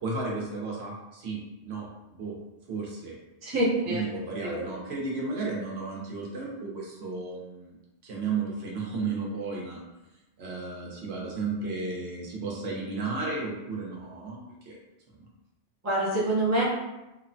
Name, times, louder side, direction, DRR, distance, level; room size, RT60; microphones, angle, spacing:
voice 1, 0.0-2.4 2.7-3.2 3.8-7.8 8.0-9.8 10.4-14.4 14.7-14.8 15.2-15.3, right 3 dB, 70° right, -2 dB, 0.9 m, -33 dB
voice 2, 3.4-4.0 4.4-4.7 15.8-16.6, right 1 dB, 20° right, -5 dB, 0.5 m, -26 dB
3.0 x 2.1 x 2.5 m, 0.98 s
omnidirectional pair, 1.1 m